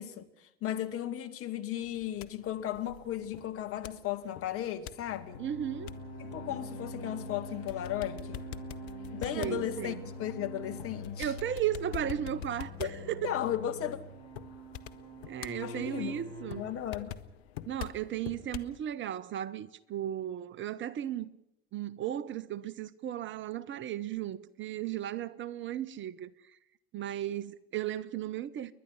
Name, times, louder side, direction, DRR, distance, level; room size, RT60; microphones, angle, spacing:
voice 1, 0.0-5.4 6.2-8.5 9.1-11.3 12.8-14.0 15.6-16.2 16.6-17.2, left 11 dB, 40° left, 2.1 m, -36 dB
sound 1, 1.8-18.8, left 12 dB, 65° left, 1.1 m, -47 dB
sound 2, 4.9-16.6, left 1 dB, 85° left, 4.3 m, -44 dB
voice 2, 5.4-5.9 9.4-10.0 11.2-13.3 15.3-16.7 17.7-21.3 21.7-26.6 26.9-28.7, right 11 dB, 35° right, 0.8 m, -35 dB
30.0 x 11.5 x 10.0 m
figure-of-eight pair, 75°, 33 cm